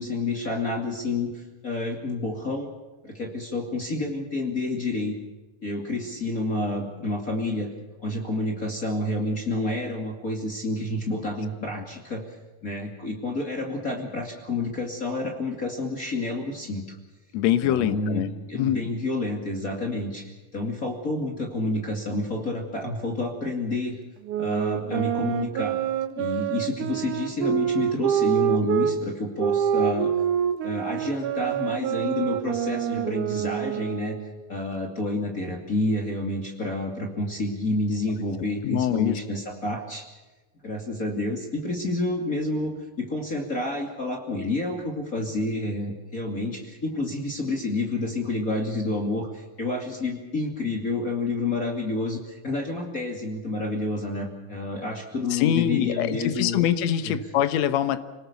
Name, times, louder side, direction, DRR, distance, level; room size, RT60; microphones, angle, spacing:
voice 1, 0.0-2.7 3.0-5.1 5.6-7.7 8.0-12.4 12.6-17.0 17.6-24.0 24.4-25.8 26.2-30.1 30.6-34.2 34.5-40.1 40.6-56.6 57.0-57.2, left 2 dB, 25° left, 1 dB, 2.4 m, -29 dB
voice 2, 17.3-18.8 38.6-39.2 55.3-58.0, left 11 dB, 65° left, 11 dB, 2.0 m, -24 dB
sound 1, 24.3-28.9 29.4-34.4, right 9 dB, 70° right, 2.6 m, -26 dB
26.0 x 19.5 x 7.0 m, 1.2 s
omnidirectional pair, 3.9 m